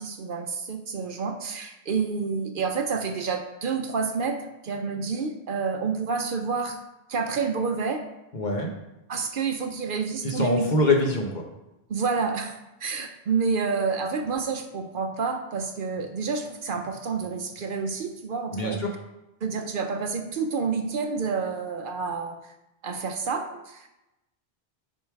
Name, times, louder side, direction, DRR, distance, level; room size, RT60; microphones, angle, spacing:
voice 1, 0.0-6.8 7.1-8.0 9.1-10.6 11.9-18.8 19.4-22.5 22.8-23.9, right 5 dB, 60° right, 5 dB, 0.8 m, -29 dB
voice 2, 8.3-8.7 10.2-11.4 18.5-18.9, left 2 dB, 50° left, 1 dB, 1.2 m, -24 dB
5.3 x 5.3 x 4.6 m, 0.94 s
omnidirectional pair, 1.1 m